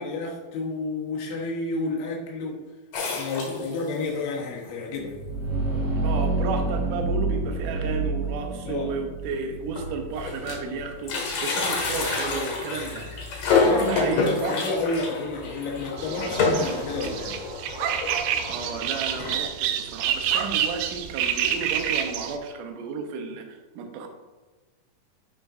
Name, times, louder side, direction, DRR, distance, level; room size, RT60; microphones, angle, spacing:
voice 1, 0.0-2.6 3.1-5.2 8.7-8.9 13.5-17.4, left 3 dB, 80° left, -2 dB, 3.1 m, -30 dB
sound 1, 2.9-4.1 4.6-4.7 4.9-5.0 5.9-6.0 6.4-6.6 6.9-7.0 8.3-8.4 9.1-9.2 9.5-10.7 11.0-19.4, left 4 dB, 60° left, 2.3 m, -28 dB
sound 2, 5.0-16.6, right 2 dB, 55° right, 1.9 m, -31 dB
voice 2, 6.0-13.1 13.6-14.6 18.5-24.1, right 4 dB, 70° right, 4 dB, 2.1 m, -32 dB
sound 3, 16.0-22.4, right 9 dB, 90° right, 1.9 m, -28 dB
11.5 x 5.1 x 2.6 m, 1.2 s
omnidirectional pair, 4.5 m